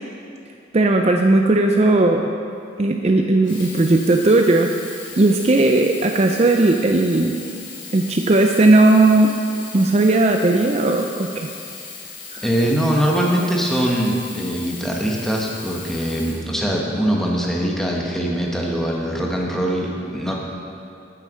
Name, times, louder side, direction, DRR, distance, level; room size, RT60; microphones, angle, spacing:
voice 1, 0.7-2.3 2.8-4.7 5.2-7.4 7.9-9.3 9.7-11.5 12.3-12.5, right 2 dB, 35° right, 3 dB, 0.5 m, -16 dB
Sink (filling or washing), 3.3-17.1 17.9-18.0, left 4 dB, 90° left, 2.6 m, -37 dB
voice 2, 12.4-20.3, equal, ahead, -2 dB, 1.3 m, -22 dB
9.1 x 9.0 x 6.3 m, 2.6 s
head